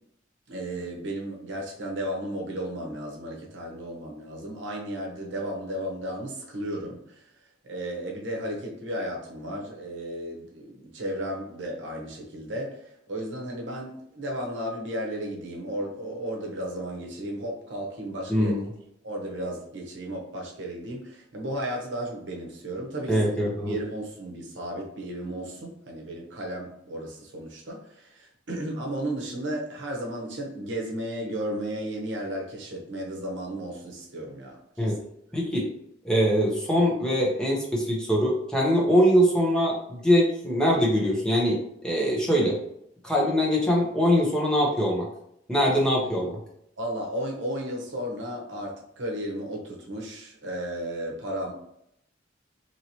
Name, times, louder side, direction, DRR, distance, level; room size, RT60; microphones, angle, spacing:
voice 1, 0.5-7.2 7.6-18.7 19.0-23.2 23.6-35.0 46.8-51.5, right 1 dB, 70° right, 0 dB, 0.8 m, -34 dB
voice 2, 18.3-18.6 23.1-23.8 34.8-35.0 35.3-35.7 36.0-42.6 43.0-45.1 45.5-46.3, equal, 5° left, -4 dB, 0.7 m, -23 dB
3.0 x 2.8 x 2.8 m, 0.73 s
head